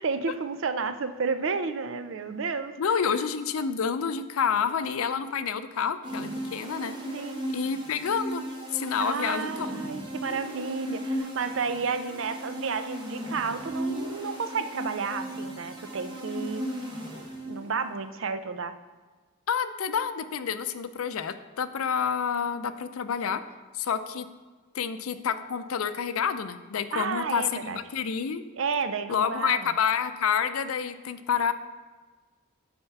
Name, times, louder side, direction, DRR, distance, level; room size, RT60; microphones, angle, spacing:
voice 1, 0.0-2.7 7.1-7.5 9.0-16.6 17.4-18.7 26.9-27.8 28.5-29.7, right 5 dB, 65° right, 10 dB, 0.5 m, -31 dB
voice 2, 2.8-7.0 7.5-8.4 8.7-9.7 19.5-23.4 23.7-24.3 24.7-28.4 29.1-31.5, left 7 dB, 90° left, 11 dB, 0.5 m, -28 dB
sound 1, 6.0-17.8, right 1 dB, 20° right, 1.2 m, -36 dB
8.7 x 4.4 x 5.8 m, 1.4 s
head